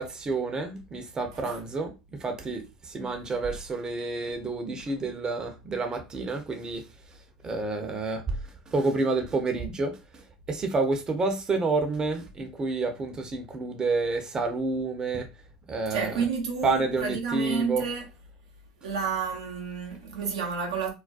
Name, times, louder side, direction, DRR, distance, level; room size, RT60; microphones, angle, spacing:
voice 1, 0.0-7.2 7.4-15.3 15.7-16.2 16.6-17.9, right 3 dB, 25° right, 0.6 m, -29 dB
voice 2, 15.9-18.1 18.8-20.9, right 5 dB, 85° right, 0.7 m, -30 dB
2.3 x 2.2 x 2.5 m
hypercardioid pair, 80°, 3 cm